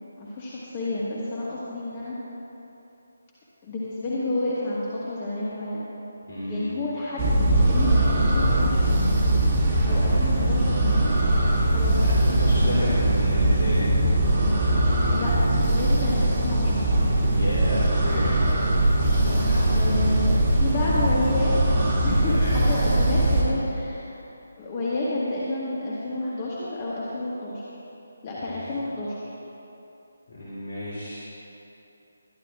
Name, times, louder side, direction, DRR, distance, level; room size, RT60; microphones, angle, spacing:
voice 1, 0.2-2.2 3.6-5.9 6.5-8.9 9.9-11.1 11.6-12.1 15.1-16.8 19.7-21.6 22.0-24.2 24.6-27.6 28.2-29.3, left 2 dB, 30° left, -7 dB, 1.5 m, -30 dB
voice 2, 6.3-6.7 12.0-13.9 17.3-18.3 19.0-20.2 22.3-22.6 28.4-28.6 30.3-31.2, left 1 dB, 55° left, -9 dB, 2.9 m, -31 dB
sound 1, 7.2-23.4, right 1 dB, 35° right, 2.2 m, -21 dB
21.5 x 11.5 x 2.4 m, 2.9 s
figure-of-eight pair, 150°, 0 cm